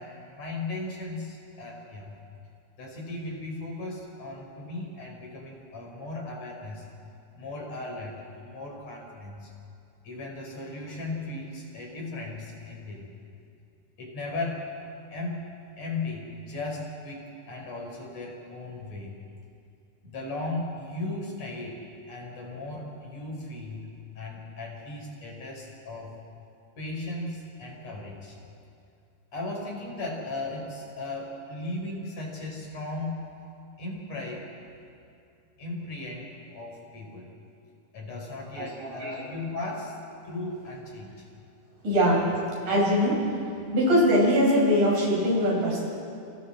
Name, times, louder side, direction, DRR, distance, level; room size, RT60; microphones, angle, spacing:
voice 1, 0.0-2.1 2.8-6.9 7.3-9.5 10.0-13.1 14.0-14.7 15.1-15.4 15.8-19.1 20.0-26.2 26.8-28.4 29.3-33.2 33.8-34.5 35.6-37.3 37.9-40.0 40.3-41.3 42.1-42.3, left 2 dB, 55° left, -1 dB, 5.2 m, -36 dB
voice 2, 38.6-39.1 41.8-42.3 42.7-43.3 43.7-45.9, equal, 80° right, -4 dB, 7.4 m, -22 dB
29.0 x 28.5 x 4.3 m, 2.6 s
omnidirectional pair, 3.7 m